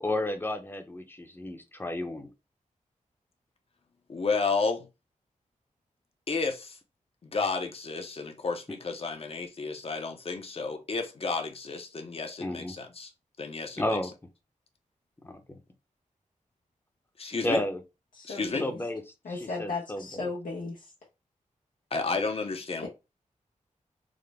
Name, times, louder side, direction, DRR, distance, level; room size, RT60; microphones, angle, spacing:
voice 1, 0.0-2.3 12.4-12.7 13.8-14.1 15.2-15.6 17.4-17.8 18.6-19.0 19.6-20.3, left 1 dB, 15° left, 0.7 m, -32 dB
voice 2, 4.1-4.9 6.3-6.8 7.2-13.1 13.4-14.0 17.2-17.6 18.3-18.7 21.9-22.9, left 4 dB, 45° left, 0.7 m, -31 dB
voice 3, 18.1-18.8 19.2-20.9 22.8-22.9, left 3 dB, 90° left, 0.9 m, -36 dB
3.7 x 2.1 x 3.3 m
wide cardioid pair, 95°, 14 cm